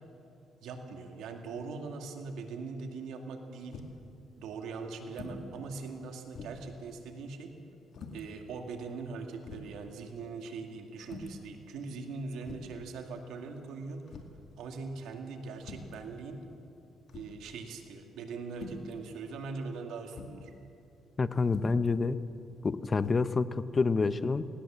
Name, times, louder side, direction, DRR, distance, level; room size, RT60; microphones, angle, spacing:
voice 1, 0.6-3.8 4.4-7.5 8.1-14.1 14.6-16.4 17.1-20.5, right 4 dB, 85° right, 4 dB, 2.2 m, -41 dB
sound 1, 3.7-4.1 5.1-5.5 5.9-6.0 6.3-6.7 7.9-8.3 9.0-9.1 9.4-9.8 11.0-11.4 12.4-12.8 14.1-14.4 15.6-16.0 17.1-17.5 18.5-18.9 20.1-20.4 21.5-21.9 23.0-23.2, left 4 dB, 65° left, 2.2 m, -45 dB
voice 2, 21.2-22.2 22.6-24.5, left 4 dB, 30° left, 14 dB, 0.8 m, -28 dB
18.5 x 18.5 x 7.5 m, 2.6 s
cardioid pair, 90°, 0 cm